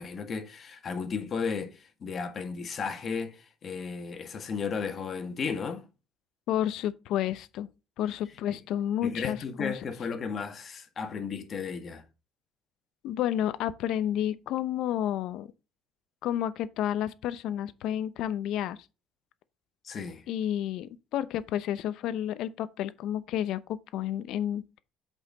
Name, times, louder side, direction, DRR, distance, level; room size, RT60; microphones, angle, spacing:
voice 1, 0.0-5.8 8.5-8.6 9.0-12.0 19.8-20.3, left 5 dB, 35° left, 1.8 m, -34 dB
voice 2, 6.5-7.7 8.0-9.7 13.0-15.5 16.2-18.8 20.3-24.6, left 11 dB, 65° left, 0.8 m, -30 dB
8.2 x 5.6 x 4.0 m
cardioid pair, 145°, 0 cm